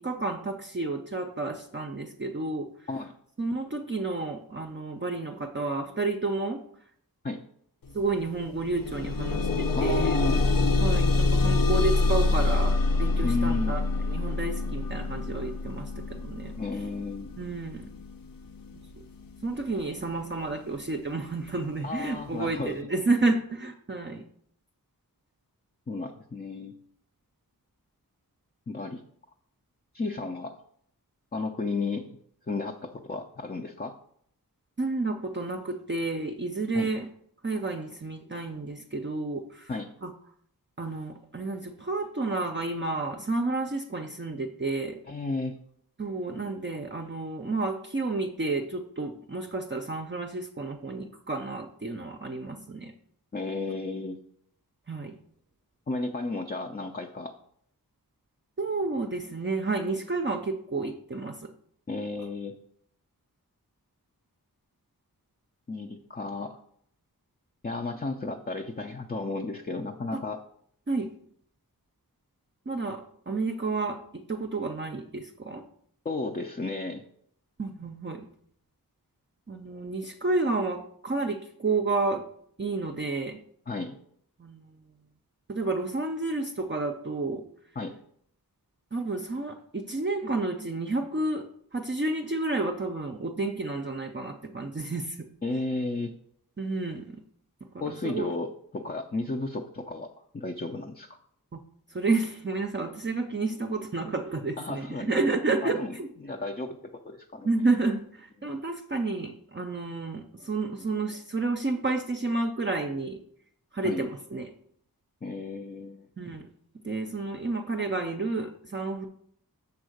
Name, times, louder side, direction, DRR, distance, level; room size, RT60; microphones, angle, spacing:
voice 1, 0.0-2.7 3.4-6.6 7.9-10.2 10.8-16.5 17.4-17.9 18.7-18.8 19.4-24.2 34.8-37.1 37.4-39.7 40.0-40.1 40.8-45.0 46.0-52.9 54.9-55.2 58.6-61.5 70.9-71.1 72.7-75.6 77.6-78.3 79.5-82.2 82.6-83.4 84.4-84.8 85.5-87.4 88.9-91.5 91.7-95.2 96.6-97.2 97.7-98.3 101.5-101.6 101.9-106.1 107.4-113.2 113.7-114.5 116.2-116.4 116.8-119.1, right 3 dB, 30° right, 3 dB, 0.6 m, -30 dB
sound 1, 7.9-8.0 8.4-19.4 20.2-20.3 20.8-20.9, left 3 dB, 65° left, 0.7 m, -26 dB
voice 2, 9.8-10.4 13.2-13.8 16.6-17.3 21.8-22.8 25.9-26.7 28.7-29.0 29.9-30.6 31.3-32.2 32.5-34.0 36.7-36.9 39.7-39.9 45.1-45.6 53.3-54.2 55.9-57.3 61.9-62.5 65.7-66.6 67.6-70.4 76.0-77.0 83.7-84.0 87.8-87.9 95.4-96.1 97.8-101.2 104.6-105.1 105.6-105.9 106.2-107.5 113.8-114.0 115.2-116.1, left 3 dB, 25° left, 3 dB, 0.5 m, -33 dB
7.0 x 3.7 x 6.4 m, 0.66 s
wide cardioid pair, 85°, 36 cm